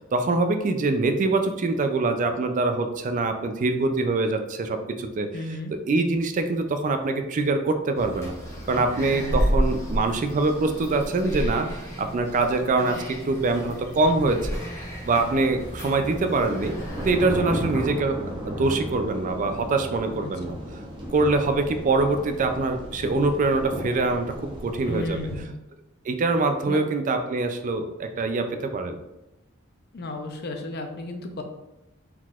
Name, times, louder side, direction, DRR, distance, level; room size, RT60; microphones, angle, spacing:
voice 1, 0.1-5.3 5.7-8.3 8.7-14.6 15.0-16.7 17.0-18.2 18.5-20.5 21.1-24.3 24.6-25.2 26.1-29.0, right 3 dB, 40° right, 7 dB, 0.4 m, -24 dB
voice 2, 5.3-5.7 9.1-9.5 17.4-17.7 20.2-20.5 24.9-25.5 26.6-26.8 29.9-31.4, left 1 dB, 50° left, 5 dB, 0.6 m, -33 dB
sound 1, 7.9-17.9, equal, 15° left, 0.8 m, -31 dB
sound 2, 15.2-25.4, equal, 25° right, 0.8 m, -35 dB
4.5 x 3.9 x 2.4 m, 0.95 s
head